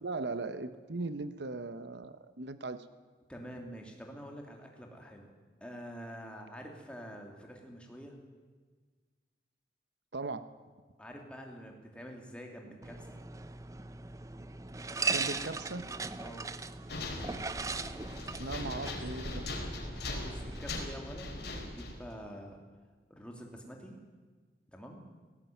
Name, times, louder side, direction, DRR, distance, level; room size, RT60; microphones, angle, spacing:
voice 1, 0.0-2.9 10.1-10.5 15.1-16.0 18.4-19.5, right 3 dB, 80° right, 12 dB, 1.0 m, -38 dB
voice 2, 3.3-5.3 5.6-8.2 11.0-13.2 16.2-16.5 20.2-22.6 23.1-24.0 24.7-25.0, equal, 5° left, 1 dB, 2.9 m, -47 dB
sound 1, 12.8-20.8, right 4 dB, 20° right, 0.6 m, -39 dB
sound 2, 16.9-22.1, left 2 dB, 75° left, 4.3 m, -40 dB
18.0 x 17.5 x 9.3 m, 1.5 s
head